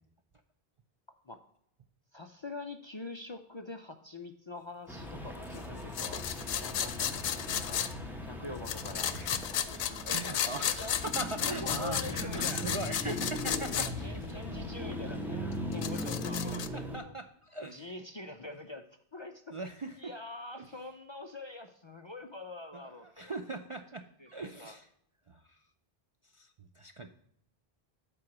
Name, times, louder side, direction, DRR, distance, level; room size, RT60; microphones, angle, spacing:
voice 1, 2.1-7.8 8.2-9.2 9.5-11.0 11.5-12.6 13.7-17.1 17.7-18.9 19.1-19.6 20.0-23.4 24.2-24.8, left 2 dB, 40° left, 6 dB, 0.4 m, -45 dB
sound 1, 4.9-17.0, left 1 dB, ahead, 1.1 m, -39 dB
sound 2, 6.0-7.9 8.7-13.9 14.2-14.3 15.5-16.7, left 10 dB, 85° left, 0.8 m, -34 dB
voice 2, 9.6-14.4 16.7-17.9 19.5-20.1 20.6-20.7 22.7-24.9 25.3-25.6 26.3-27.1, right 2 dB, 45° right, 6 dB, 0.4 m, -41 dB
7.7 x 4.2 x 5.9 m, 0.71 s
omnidirectional pair, 1.0 m